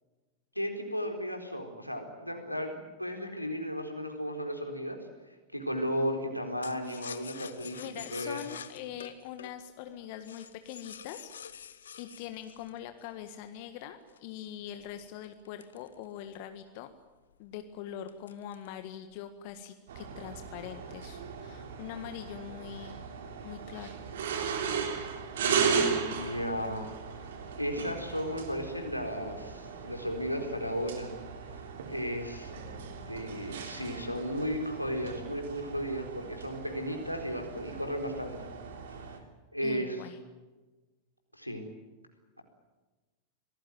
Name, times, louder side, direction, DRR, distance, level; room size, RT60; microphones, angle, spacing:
voice 1, 0.6-5.0 5.5-8.4 25.5-26.9 27.6-31.1 31.9-32.5 33.1-38.5 38.9-39.0 39.5-40.0 41.3-41.6, equal, 90° left, 3 dB, 4.2 m, -35 dB
sound 1, 6.6-13.5 14.1-16.5 16.9-17.0 17.3-17.6 18.1-18.8 19.1-19.7, left 8 dB, 65° left, 1.3 m, -47 dB
voice 2, 7.8-11.3 12.0-16.9 17.4-23.0 23.4-24.0 39.6-40.2, left 10 dB, 45° left, 9 dB, 1.7 m, -43 dB
sound 2, 19.9-39.2, right 6 dB, 60° right, 3.4 m, -36 dB
26.0 x 18.5 x 9.3 m, 1.2 s
figure-of-eight pair, 90°, 0 cm